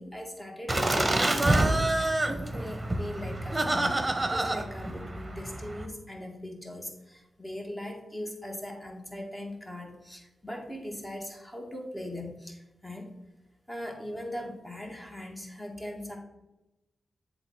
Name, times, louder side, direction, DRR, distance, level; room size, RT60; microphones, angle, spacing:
voice 1, 0.0-13.1 13.7-16.2, left 1 dB, 15° left, 1 dB, 2.2 m, -40 dB
Laughter, 0.7-5.8, right 1 dB, 25° right, 1.2 m, -27 dB
7.8 x 3.5 x 6.1 m, 0.97 s
cardioid pair, 45°, 0 cm